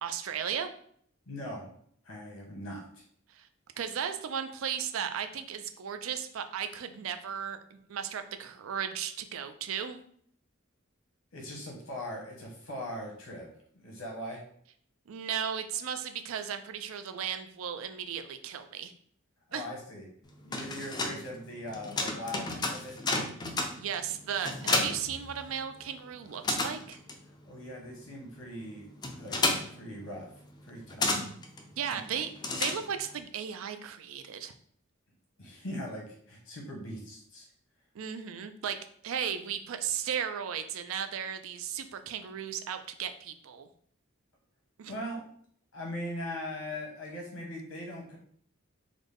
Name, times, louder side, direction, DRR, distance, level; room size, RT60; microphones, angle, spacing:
voice 1, 0.0-0.7 3.3-3.5 3.8-10.0 15.1-18.9 19.5-19.6 23.7-27.0 31.8-34.5 37.9-38.8 39.0-43.7 44.8-44.9, right 8 dB, 80° right, 9 dB, 0.4 m, -35 dB
voice 2, 1.3-1.7 2.0-3.0 11.3-13.5 13.8-14.4 19.5-20.0 20.4-23.0 27.4-28.9 29.2-29.4 29.7-30.3 30.6-31.1 31.9-32.0 35.4-37.5 44.9-45.2 45.7-48.2, left 1 dB, 90° left, -1 dB, 1.2 m, -40 dB
sound 1, 20.3-25.9 26.1-33.2, left 2 dB, 20° left, 0.3 m, -33 dB
3.8 x 2.1 x 3.4 m, 0.62 s
head